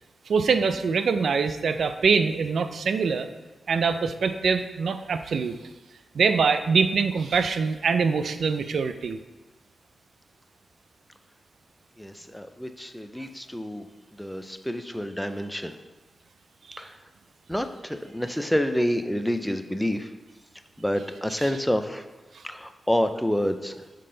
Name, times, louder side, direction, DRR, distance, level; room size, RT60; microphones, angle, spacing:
voice 1, 0.3-3.3 3.7-5.6 6.1-9.2 16.7-16.8 21.4-21.6 22.3-22.4, right 5 dB, 80° right, 9 dB, 0.3 m, -24 dB
voice 2, 12.0-13.8 14.2-15.7 16.8-16.9 17.5-20.1 20.8-22.0 22.4-23.7, equal, 5° left, 8 dB, 0.4 m, -28 dB
6.5 x 3.8 x 3.8 m, 1.1 s
wide cardioid pair, 90°, 0 cm